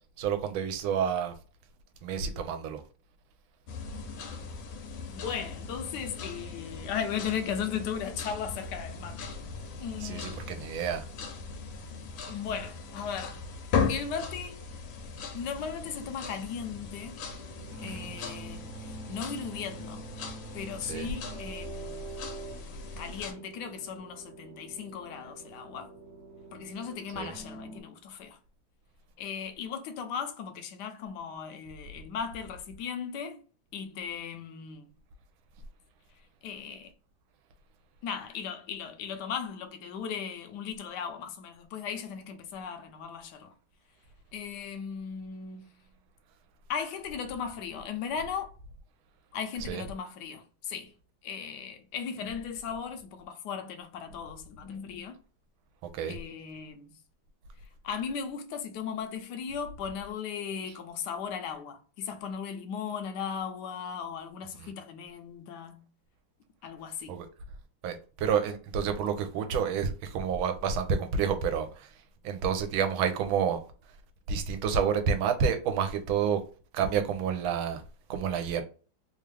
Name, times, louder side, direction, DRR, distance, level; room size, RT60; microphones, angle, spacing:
voice 1, 0.2-1.3 2.0-2.8 10.0-11.0 17.8-18.1 20.9-21.1 27.2-27.3 49.7-49.8 55.9-56.1 64.6-64.7 67.1-67.3 67.8-71.9 72.2-73.6 74.3-76.4 76.7-77.8 78.1-78.6, right 7 dB, 85° right, 1.4 m, -29 dB
sound 1, 3.7-23.3, left 5 dB, 85° left, 1.5 m, -38 dB
voice 2, 5.1-9.3 9.8-10.3 12.3-13.4 13.9-14.6 15.3-17.2 17.8-20.1 20.5-22.2 23.0-25.9 26.5-28.4 29.2-33.4 33.7-35.0 36.4-36.9 38.0-43.5 44.3-45.7 46.7-48.5 49.3-50.9 51.2-55.2 56.1-57.0 57.8-65.9 66.6-67.2, left 7 dB, 70° left, 1.1 m, -37 dB
sound 2, 17.3-27.8, right 3 dB, 45° right, 0.9 m, -46 dB
3.5 x 2.4 x 3.2 m
omnidirectional pair, 2.2 m